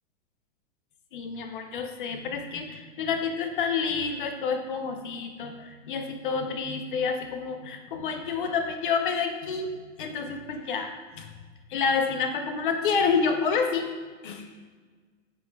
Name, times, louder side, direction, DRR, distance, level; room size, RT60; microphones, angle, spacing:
voice 1, 1.1-11.3 11.7-13.9 14.2-14.5, left 5 dB, 40° left, 6 dB, 0.7 m, -29 dB
8.1 x 7.6 x 2.3 m, 1.5 s
supercardioid pair, 170°, 39 cm